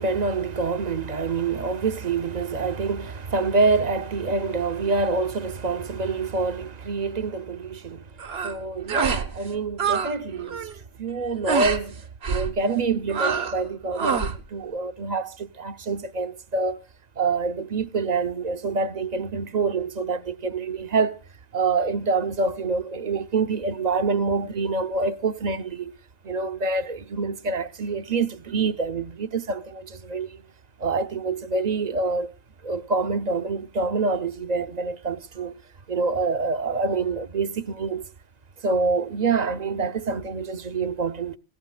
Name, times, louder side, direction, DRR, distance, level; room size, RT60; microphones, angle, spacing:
voice 1, 0.0-8.0 8.4-10.7 11.0-12.0 12.3-16.8 17.2-21.2 21.5-25.9 26.2-30.4 30.8-32.3 32.6-35.5 35.9-38.0 38.6-41.4, right 4 dB, 45° right, 0.8 m, -26 dB
sound 1, 8.2-8.6 8.9-9.3 9.5-10.1 10.4-10.7 11.5-11.8 12.2-12.5 13.1-13.6 13.9-14.4, right 6 dB, 80° right, 1.3 m, -26 dB
22.0 x 15.5 x 2.2 m
omnidirectional pair, 1.0 m